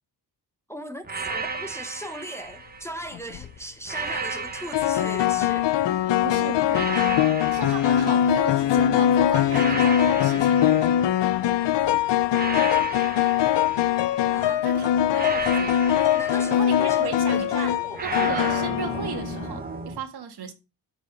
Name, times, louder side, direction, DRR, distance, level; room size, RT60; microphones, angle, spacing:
voice 1, 0.7-5.9 14.3-14.6 16.1-18.0, equal, 5° left, 0.8 m, -38 dB
sound 1, 1.0-3.2 3.8-6.0 6.7-8.8 9.5-11.6 12.3-14.5 15.1-17.3 17.9-20.0, right 4 dB, 20° right, 1.1 m, -34 dB
sound 2, 3.1-3.5 4.7-19.6, left 11 dB, 85° left, 0.7 m, -22 dB
voice 2, 6.2-7.0 7.5-10.6 14.4-15.7 16.5-17.7 18.0-20.5, right 6 dB, 65° right, 1.8 m, -35 dB
13.0 x 4.9 x 5.3 m
wide cardioid pair, 170°, 41 cm